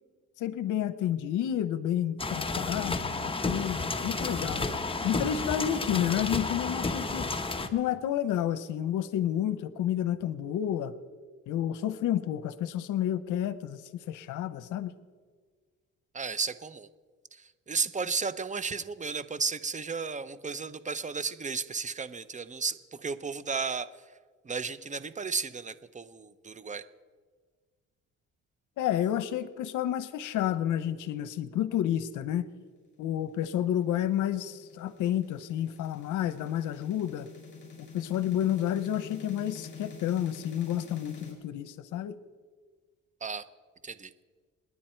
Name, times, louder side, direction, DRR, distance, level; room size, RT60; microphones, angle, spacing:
voice 1, 0.4-4.7 5.0-7.3 7.7-10.9 11.5-13.8 14.1-14.9 28.8-32.5 33.0-37.3 37.8-42.2, left 11 dB, 85° left, 14 dB, 0.8 m, -30 dB
sound 1, 2.2-7.7, left 3 dB, 20° left, 1.2 m, -31 dB
voice 2, 16.1-16.9 17.3-23.9 24.4-26.8 43.2-43.5 43.8-44.1, right 5 dB, 25° right, 14 dB, 0.8 m, -34 dB
sound 2, 33.2-41.3, left 5 dB, 40° left, 6.0 m, -47 dB
28.5 x 9.9 x 4.5 m, 1.5 s
cardioid pair, 90°, 30 cm